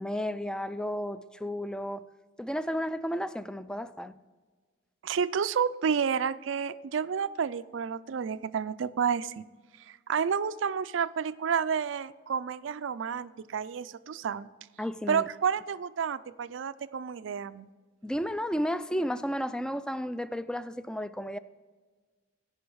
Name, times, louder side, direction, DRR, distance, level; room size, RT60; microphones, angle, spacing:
voice 1, 0.0-2.0 2.4-4.1 14.8-15.3 18.0-21.4, equal, 5° left, 0.3 m, -33 dB
voice 2, 5.0-9.4 10.1-14.5 15.1-17.7, right 7 dB, 70° right, 0.4 m, -30 dB
16.5 x 5.6 x 4.6 m
head